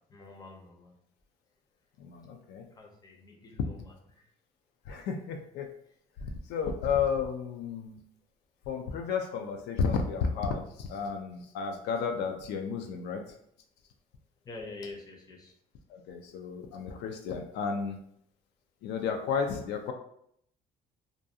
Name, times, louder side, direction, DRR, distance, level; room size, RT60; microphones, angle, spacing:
voice 1, 0.1-0.9 2.8-4.3 14.4-15.5, left 3 dB, 25° left, 1 dB, 0.6 m, -46 dB
voice 2, 2.0-2.7 4.9-5.7 6.2-8.0 8.7-13.2 15.9-18.0 18.8-19.9, left 6 dB, 80° left, 4 dB, 0.4 m, -32 dB
2.5 x 2.2 x 2.7 m, 0.70 s
cardioid pair, 110°, 17 cm